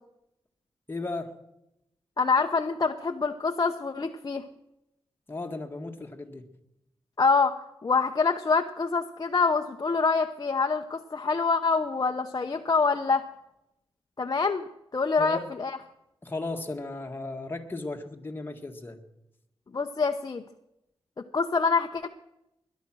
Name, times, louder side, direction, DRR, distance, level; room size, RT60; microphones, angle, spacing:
voice 1, 0.9-1.4 5.3-6.5 15.2-15.5 16.2-19.0, left 2 dB, 20° left, 3 dB, 1.7 m, -35 dB
voice 2, 2.2-4.4 7.2-13.2 14.2-15.8 19.7-20.4 21.3-22.1, left 4 dB, 40° left, 4 dB, 0.8 m, -26 dB
21.0 x 11.0 x 6.2 m, 0.87 s
wide cardioid pair, 105°, 10 cm